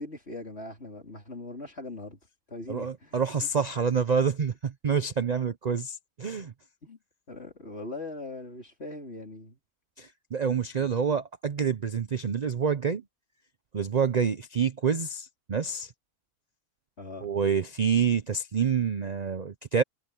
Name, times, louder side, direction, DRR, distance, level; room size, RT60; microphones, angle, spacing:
voice 1, 0.0-2.2 2.5-3.5 6.8-7.0 7.3-9.6 10.7-10.9 17.0-17.3, left 2 dB, 40° left, 4.4 m, -41 dB
voice 2, 2.7-6.5 10.0-13.0 13.7-15.9 17.2-19.8, right 6 dB, 65° right, 0.4 m, -27 dB
omnidirectional pair, 1.7 m